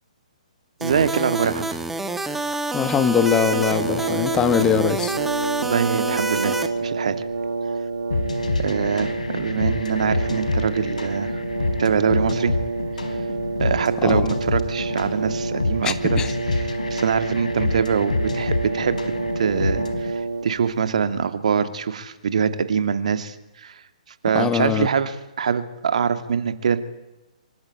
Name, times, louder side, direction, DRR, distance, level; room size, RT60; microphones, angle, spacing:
sound 1, 0.8-6.7, right 2 dB, 5° right, 1.9 m, -28 dB
voice 1, 0.8-1.7 5.6-7.2 8.6-11.4 11.8-12.5 13.6-19.0 19.4-23.8 24.2-26.8, right 6 dB, 60° right, 10 dB, 2.5 m, -24 dB
voice 2, 2.7-5.1 14.0-14.3 15.8-16.3 24.3-24.9, left 8 dB, 15° left, 11 dB, 1.9 m, -22 dB
Brass instrument, 2.9-20.7, right 3 dB, 75° right, 3.2 m, -28 dB
sound 2, 8.1-20.1, left 3 dB, 70° left, 4.0 m, -27 dB
26.0 x 24.0 x 9.0 m, 1.0 s
figure-of-eight pair, 125°, 4 cm